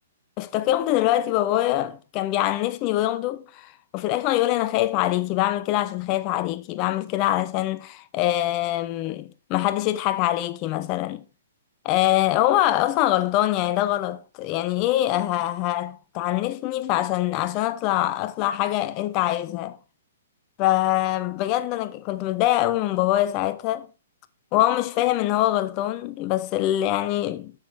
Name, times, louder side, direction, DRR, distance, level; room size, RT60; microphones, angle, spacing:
voice 1, 0.4-11.2 11.8-19.8 20.6-23.9 24.5-27.5, left 14 dB, 35° left, 0.8 m, -24 dB
7.6 x 6.6 x 4.1 m
hypercardioid pair, 135°, 0 cm